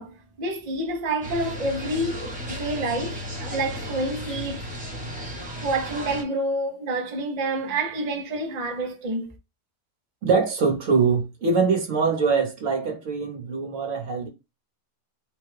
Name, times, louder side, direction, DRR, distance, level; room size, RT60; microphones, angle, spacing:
voice 1, 0.0-4.7 5.6-9.3, right 2 dB, 45° right, 0.5 m, -28 dB
sound 1, 1.2-6.2, left 1 dB, 5° right, 0.7 m, -34 dB
voice 2, 10.2-14.3, right 5 dB, 60° right, 1.3 m, -23 dB
3.8 x 2.3 x 3.2 m
omnidirectional pair, 1.6 m